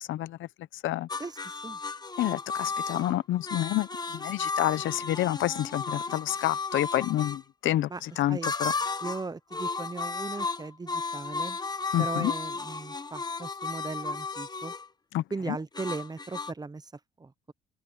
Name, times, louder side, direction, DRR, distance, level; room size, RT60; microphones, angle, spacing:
voice 1, 0.1-0.5 0.8-1.1 2.2-8.7 11.9-12.3 15.1-15.6, left 14 dB, 80° left, 0.8 m, -29 dB
sound 1, 1.1-7.4 8.4-9.3 9.5-14.9 15.7-16.5, left 4 dB, 20° left, 1.3 m, -34 dB
voice 2, 1.2-1.8 7.9-8.0 8.3-8.5 9.0-11.6 12.0-14.7 15.3-16.9 17.2-17.5, right 3 dB, 20° right, 0.9 m, -37 dB
open air
cardioid pair, 90°, 20 cm